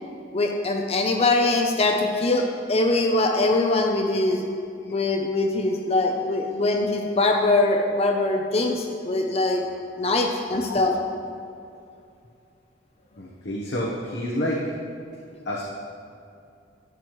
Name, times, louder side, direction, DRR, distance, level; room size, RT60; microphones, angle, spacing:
voice 1, 0.3-4.4 4.9-9.6 10.0-10.9, left 2 dB, 35° left, 3 dB, 0.6 m, -22 dB
voice 2, 13.2-14.6 15.4-15.6, left 1 dB, 65° left, -3 dB, 1.1 m, -29 dB
12.0 x 9.4 x 3.1 m, 2.5 s
head